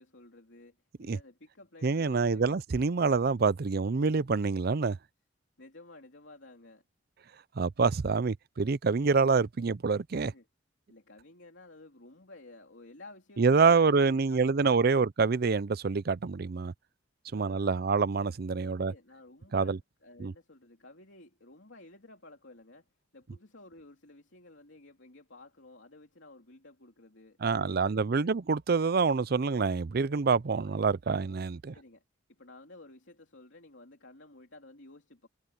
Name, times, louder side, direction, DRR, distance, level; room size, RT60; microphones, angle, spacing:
voice 1, 0.0-2.6 5.6-6.8 10.1-10.5 10.9-15.1 17.3-17.9 18.6-28.3 31.7-32.0 32.3-35.3, left 2 dB, 80° left, 2.9 m, -53 dB
voice 2, 1.8-5.0 7.6-10.3 13.4-16.7 17.3-18.9 19.5-19.8 20.2-20.3 27.4-31.7, right 4 dB, 55° right, 0.5 m, -26 dB
head